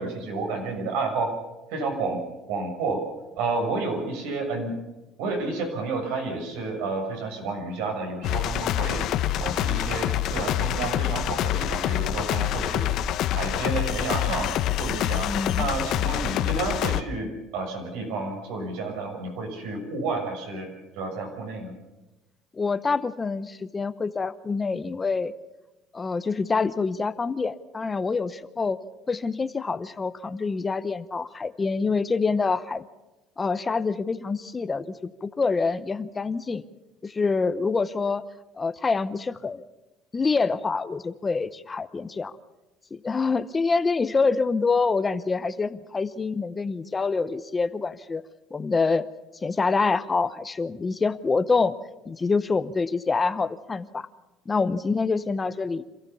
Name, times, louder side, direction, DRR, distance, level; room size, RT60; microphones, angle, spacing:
voice 1, 0.0-1.3 1.7-2.2 2.5-3.0 3.4-4.7 5.2-9.0 9.4-12.9 13.3-14.5 14.8-15.3 15.6-20.7 21.0-21.7, right 3 dB, 85° right, 3 dB, 6.7 m, -30 dB
sound 1, 8.2-17.0, left 11 dB, 55° left, 1.0 m, -26 dB
voice 2, 15.2-15.7 22.5-25.3 25.9-28.8 29.1-32.9 33.4-36.6 37.0-38.2 38.6-39.6 40.1-42.3 42.9-48.2 48.5-49.0 49.4-51.8 52.1-54.1 54.5-55.8, left 4 dB, 20° left, 13 dB, 0.8 m, -26 dB
27.0 x 15.0 x 7.0 m, 1.0 s
cardioid pair, 135°, 0 cm